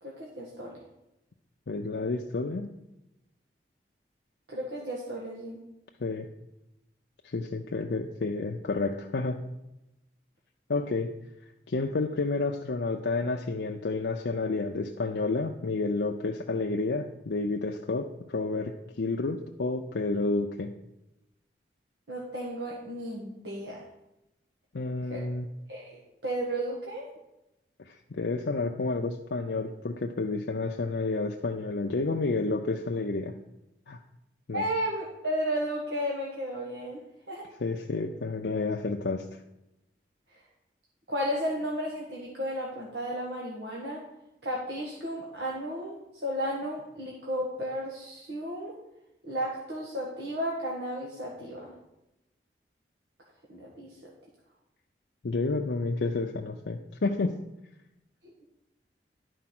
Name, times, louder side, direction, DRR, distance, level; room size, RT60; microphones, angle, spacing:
voice 1, 0.0-0.8 4.5-5.6 22.1-23.8 25.1-25.2 25.7-27.1 34.5-37.0 37.3-37.5 41.1-44.0 44.4-46.0 46.2-48.7 49.2-51.7 53.5-54.1 58.2-58.3, equal, 80° right, -3 dB, 1.6 m, -33 dB
voice 2, 1.7-2.7 6.0-6.3 7.2-9.4 10.7-11.1 11.7-20.7 24.7-25.5 27.8-33.3 33.9-34.0 34.5-34.6 37.6-39.2 55.2-57.4, left 3 dB, 80° left, 2 dB, 0.6 m, -30 dB
11.0 x 4.7 x 6.0 m, 0.91 s
head